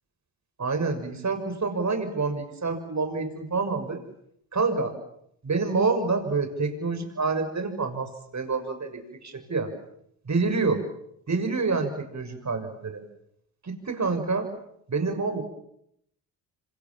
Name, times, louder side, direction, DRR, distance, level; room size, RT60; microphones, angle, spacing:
voice 1, 0.6-4.0 4.5-4.9 5.4-9.7 10.2-10.8 11.3-13.0 13.6-14.5 14.9-15.4, right 4 dB, 40° right, 7 dB, 6.8 m, -27 dB
26.5 x 26.5 x 7.4 m, 0.74 s
supercardioid pair, 60°, 43 cm